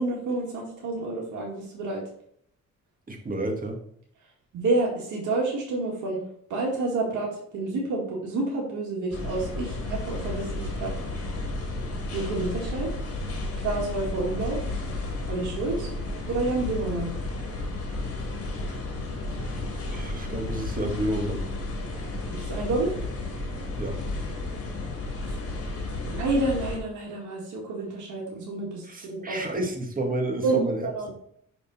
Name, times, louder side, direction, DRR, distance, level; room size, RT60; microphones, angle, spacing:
voice 1, 0.0-2.0 4.5-6.2 6.5-11.0 12.1-12.9 13.5-14.6 15.3-15.9 16.3-17.1 22.4-22.9 25.2-25.4 26.0-29.4 30.4-31.1, right 2 dB, 80° right, -2 dB, 2.2 m, -29 dB
voice 2, 3.1-3.8 19.9-21.4 23.8-24.0 28.9-31.1, right 1 dB, 30° right, 3 dB, 1.8 m, -30 dB
sound 1, 9.1-26.8, left 2 dB, 50° left, 2.3 m, -32 dB
6.2 x 5.2 x 4.2 m, 0.67 s
cardioid pair, 90°, 30 cm